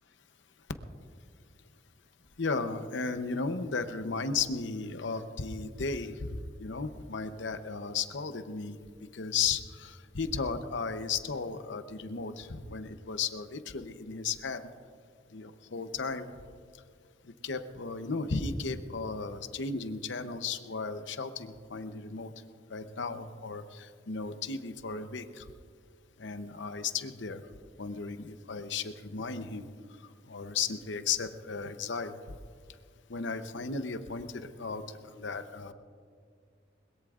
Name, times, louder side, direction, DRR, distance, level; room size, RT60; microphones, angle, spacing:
voice 1, 2.4-14.7 15.3-16.3 17.2-22.3 22.7-25.5 26.2-27.5 27.8-29.7 30.0-32.2 33.1-35.7, left 5 dB, 75° left, 9 dB, 0.8 m, -35 dB
21.5 x 21.0 x 2.5 m, 2.1 s
head